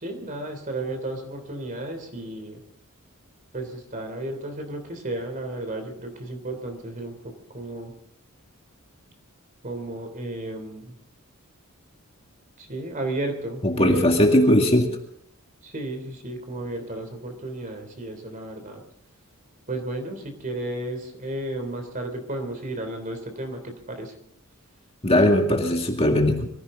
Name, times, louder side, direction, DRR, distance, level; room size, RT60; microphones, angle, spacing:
voice 1, 0.0-2.6 3.5-7.9 9.6-10.9 12.6-14.5 15.6-18.8 19.7-24.1, right 2 dB, 40° right, 6 dB, 3.1 m, -33 dB
voice 2, 13.6-14.9 25.0-26.5, left 1 dB, 25° left, 3 dB, 2.0 m, -19 dB
23.5 x 15.5 x 3.8 m, 0.69 s
head